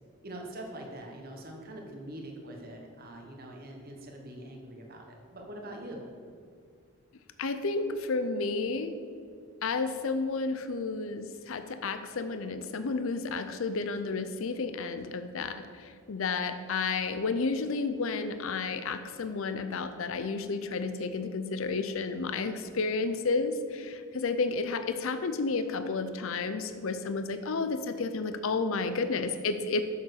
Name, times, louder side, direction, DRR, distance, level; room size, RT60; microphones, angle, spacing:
voice 1, 0.2-6.0, right 1 dB, 40° right, 1 dB, 1.2 m, -43 dB
voice 2, 7.4-8.9 9.6-29.8, left 4 dB, 60° left, 10 dB, 0.5 m, -31 dB
7.1 x 7.0 x 6.4 m, 2.3 s
head